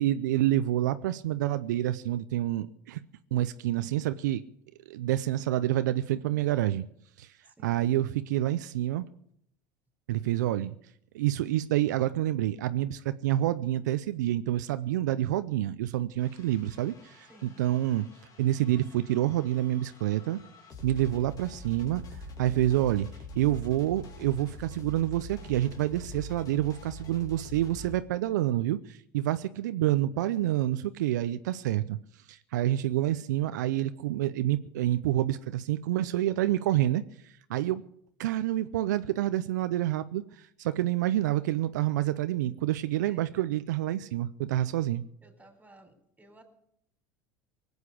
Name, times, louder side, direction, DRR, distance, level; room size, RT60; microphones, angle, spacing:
voice 1, 0.0-3.0 3.3-4.4 4.9-6.9 7.2-7.3 7.6-9.1 10.1-10.8 11.1-18.1 18.4-20.4 20.8-22.0 22.4-23.1 23.4-32.0 32.3-37.8 38.2-45.0, right 13 dB, 80° right, 12 dB, 0.6 m, -28 dB
voice 2, 7.5-7.8 17.3-17.6 43.1-43.5 45.2-46.4, right 2 dB, 15° right, 5 dB, 4.1 m, -56 dB
sound 1, 16.2-28.0, left 1 dB, 40° left, 2.8 m, -45 dB
19.0 x 8.1 x 8.4 m, 0.72 s
hypercardioid pair, 85°, 10 cm